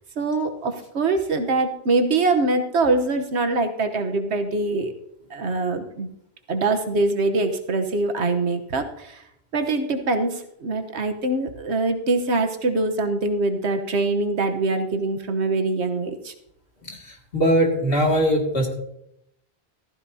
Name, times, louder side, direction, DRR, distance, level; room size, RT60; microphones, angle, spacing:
voice 1, 0.2-4.9 5.3-6.1 6.5-9.2 9.5-16.3, right 3 dB, 85° right, 6 dB, 1.4 m, -23 dB
voice 2, 16.9-18.7, equal, 60° left, -1 dB, 2.6 m, -21 dB
14.5 x 14.5 x 2.8 m, 0.78 s
omnidirectional pair, 1.1 m